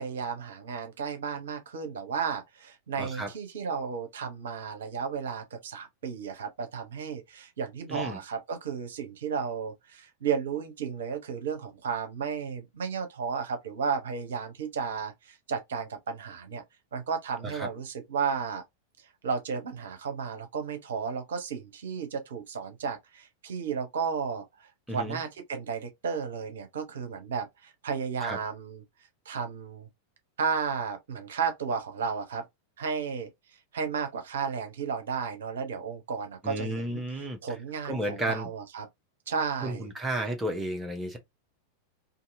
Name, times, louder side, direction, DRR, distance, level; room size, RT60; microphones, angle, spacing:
voice 1, 0.0-16.6 16.9-18.6 19.2-28.8 29.3-29.9 30.4-32.4 32.8-33.3 33.7-37.0 37.4-38.9 39.3-39.9, right 6 dB, 60° right, 0.7 m, -33 dB
voice 2, 3.0-3.3 7.9-8.2 17.4-17.7 24.9-25.2 28.2-28.4 36.4-37.4 37.8-38.5 39.6-41.2, right 1 dB, 10° right, 0.7 m, -32 dB
2.7 x 2.6 x 2.5 m
figure-of-eight pair, 90°, 0 cm